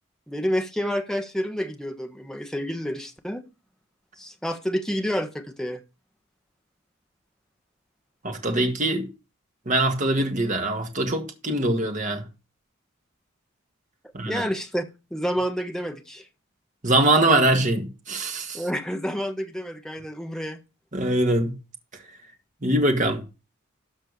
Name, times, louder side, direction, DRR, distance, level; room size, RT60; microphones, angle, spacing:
voice 1, 0.3-3.4 4.2-5.8 14.2-14.8 15.1-16.3 18.5-20.6, equal, 5° left, 1.2 m, -29 dB
voice 2, 8.2-9.1 9.7-12.2 14.1-14.4 16.8-18.6 20.9-21.6 22.6-23.2, right 2 dB, 35° right, 1.8 m, -23 dB
13.0 x 4.5 x 6.6 m
head